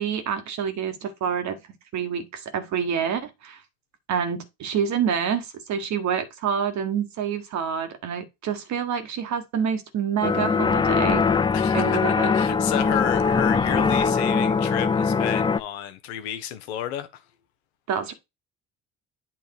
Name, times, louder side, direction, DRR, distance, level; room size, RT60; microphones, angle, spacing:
voice 1, 0.0-1.6 1.9-3.6 4.1-11.3 11.7-12.3 17.9-18.1, right 7 dB, 60° right, 1.7 m, -27 dB
sound 1, 10.2-15.6, left 5 dB, 15° left, 0.4 m, -22 dB
voice 2, 11.5-17.2, left 10 dB, 80° left, 0.9 m, -31 dB
8.7 x 3.1 x 4.8 m
hypercardioid pair, 60°, 32 cm